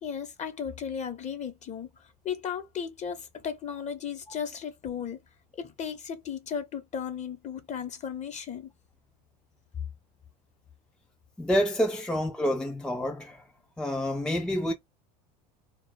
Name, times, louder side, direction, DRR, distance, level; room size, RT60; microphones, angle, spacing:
voice 1, 0.0-5.2 5.5-8.7, left 7 dB, 35° left, 0.9 m, -35 dB
voice 2, 11.4-13.4 13.8-14.7, equal, 5° left, 0.4 m, -28 dB
2.4 x 2.1 x 3.8 m
supercardioid pair, 100°, 21 cm